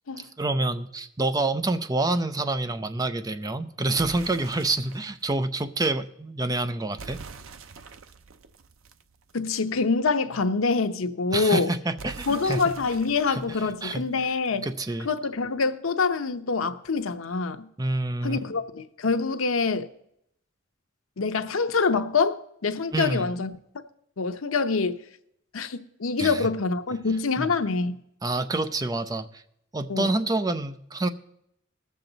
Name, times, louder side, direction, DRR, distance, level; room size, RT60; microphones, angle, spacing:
voice 1, 0.4-7.2 11.3-12.7 13.3-13.4 13.8-14.1 14.6-15.1 17.8-18.4 22.9-23.3 26.2-26.5 27.4-27.5 28.2-29.4 29.7-31.1, right 2 dB, 20° right, 0.5 m, -27 dB
sound 1, 4.0-5.2 7.0-9.7 12.0-14.7, right 4 dB, 85° right, 0.7 m, -45 dB
voice 2, 9.3-11.7 12.3-14.7 15.0-17.7 18.2-19.9 21.2-23.5 24.2-25.0 25.5-28.0 29.9-30.1, left 4 dB, 85° left, 0.8 m, -25 dB
19.5 x 7.6 x 3.9 m
head